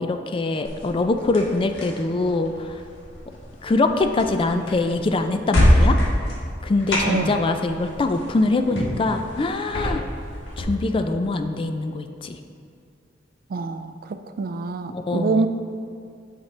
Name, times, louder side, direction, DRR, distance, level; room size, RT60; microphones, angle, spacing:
voice 1, 0.0-2.8 3.6-6.0 6.6-10.0 10.6-12.4 14.9-15.4, left 2 dB, 30° left, 7 dB, 0.3 m, -23 dB
sound 1, 0.6-10.6, left 1 dB, 85° left, 1.3 m, -25 dB
voice 2, 7.0-7.4 13.5-13.9 14.4-15.5, right 4 dB, 50° right, 9 dB, 0.3 m, -25 dB
8.3 x 5.8 x 3.2 m, 2.3 s
head